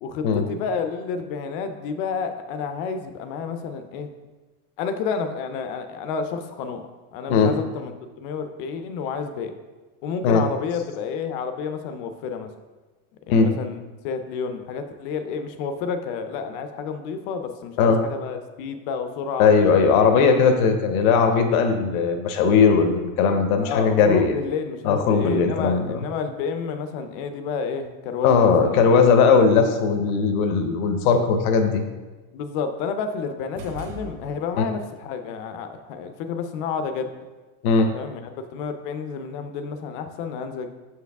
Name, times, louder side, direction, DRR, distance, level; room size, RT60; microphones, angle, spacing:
voice 1, 0.0-4.1 4.8-6.9 7.1-7.9 8.2-9.5 10.0-12.5 13.3-13.8 14.0-19.9 23.6-28.9 32.3-37.1 37.9-40.7, left 5 dB, 40° left, 8 dB, 0.4 m, -30 dB
voice 2, 19.4-24.3 24.8-26.0 28.2-31.8 34.6-34.7 37.6-37.9, left 5 dB, 85° left, 6 dB, 0.8 m, -18 dB
sound 1, 33.5-34.8, equal, 35° right, 0.9 m, -39 dB
6.6 x 4.6 x 3.4 m, 1.3 s
supercardioid pair, 170°, 42 cm